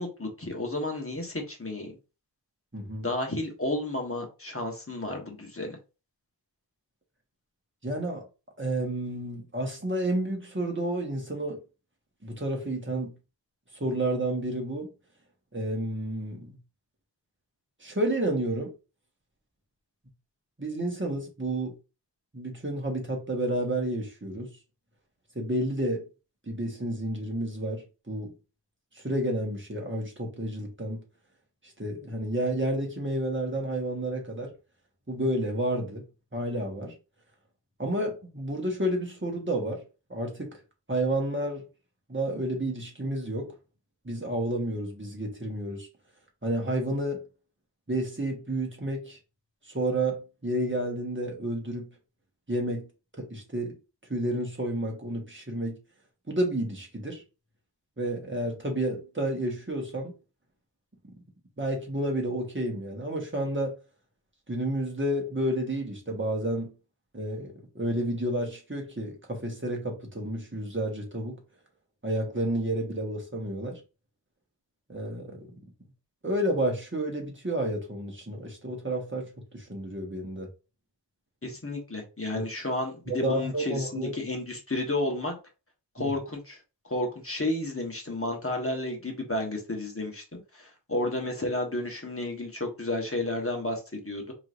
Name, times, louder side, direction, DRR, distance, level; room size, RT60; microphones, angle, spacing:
voice 1, 0.0-1.9 3.0-5.8 81.4-85.3 85.9-86.6 86.8-94.3, left 2 dB, 30° left, 1.3 m, -32 dB
voice 2, 2.7-3.1 7.8-8.2 8.6-11.6 12.2-13.1 13.8-14.9 15.5-16.6 17.8-18.7 20.6-21.7 22.3-24.5 25.3-26.0 26.5-28.3 28.9-31.0 31.8-34.5 35.1-36.0 36.3-36.9 37.8-39.8 40.1-40.6 40.9-41.6 42.1-43.5 44.0-45.9 46.4-47.3 47.9-49.2 49.7-51.9 52.5-52.9 53.2-53.8 54.1-55.8 56.3-57.2 58.0-60.1 61.6-63.8 64.5-66.7 67.1-71.4 72.0-73.8 74.9-75.5 76.2-80.5 82.3-82.4 83.1-84.1 86.0-86.1, right 1 dB, 25° right, 1.4 m, -30 dB
4.8 x 3.1 x 2.5 m
wide cardioid pair, 40°, 44 cm